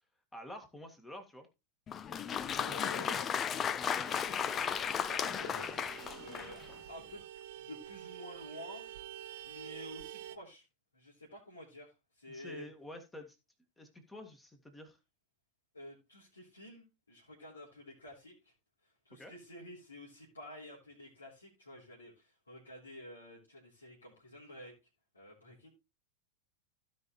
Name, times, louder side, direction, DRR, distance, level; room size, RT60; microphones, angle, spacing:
voice 1, 0.3-1.5 12.3-13.4 13.8-15.0 19.1-19.3, left 1 dB, 10° left, 6 dB, 1.9 m, -49 dB
Applause, 1.9-6.7, left 8 dB, 25° left, 0.5 m, -35 dB
voice 2, 2.6-4.1 4.4-4.6 5.1-5.8 6.2-6.6 6.9-7.2 7.6-8.8 9.4-10.6 10.9-11.9 12.2-12.7 15.7-18.3 19.1-24.7 25.1-25.7, left 1 dB, 80° left, -7 dB, 3.5 m, -50 dB
Vehicle horn car horn honking, 3.8-10.4, right 12 dB, 55° right, 0.5 m, -48 dB
15.5 x 5.3 x 3.1 m, 0.26 s
figure-of-eight pair, 90°, 0 cm